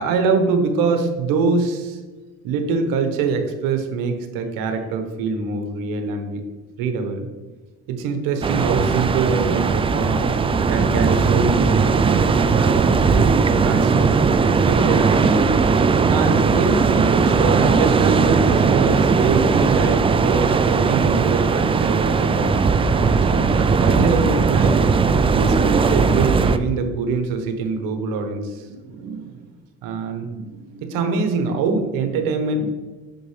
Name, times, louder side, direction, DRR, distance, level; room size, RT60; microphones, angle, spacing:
voice 1, 0.0-2.0 2.4-6.4 6.8-7.3 7.9-10.2 10.7-13.9 14.7-15.5 16.1-22.5 23.0-24.8 25.3-28.7 29.8-30.3 30.8-32.7, right 4 dB, 75° right, 5 dB, 1.1 m, -24 dB
sound 1, 8.4-26.6, right 5 dB, 15° right, 0.3 m, -18 dB
voice 2, 28.7-29.5 30.3-30.8 32.6-32.7, right 6 dB, 50° right, 3 dB, 0.8 m, -38 dB
6.7 x 5.3 x 3.2 m, 1.3 s
supercardioid pair, 90°, 34 cm